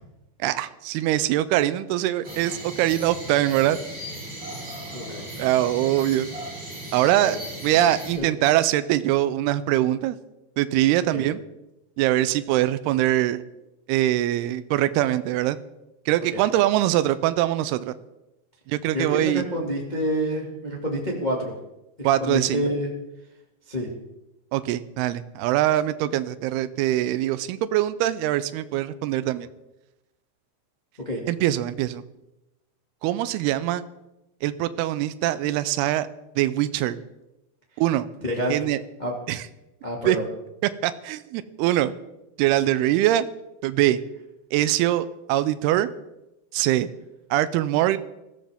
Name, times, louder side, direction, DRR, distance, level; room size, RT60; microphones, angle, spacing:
voice 1, 0.4-3.8 5.4-6.3 6.9-7.4 7.6-10.2 10.6-11.4 12.0-13.4 13.9-15.6 16.1-17.9 18.7-19.4 22.0-22.6 24.5-29.5 31.3-32.0 33.0-33.8 34.4-36.1 36.4-37.0 37.8-38.1 38.5-38.8 39.3-39.4 40.1-40.2 40.8-41.9 42.4-43.3 43.6-44.0 44.5-45.9 46.5-46.9 47.3-48.0, right 14 dB, 85° right, 13 dB, 2.3 m, -23 dB
sound 1, 2.2-8.1, right 1 dB, 30° right, 7.9 m, -37 dB
voice 2, 18.9-21.5 22.0-22.9 23.7-23.9 31.0-31.2 38.2-38.5 39.0-39.1 39.8-40.2, equal, 90° left, -2 dB, 0.4 m, -28 dB
21.5 x 14.5 x 3.6 m, 0.94 s
omnidirectional pair, 5.3 m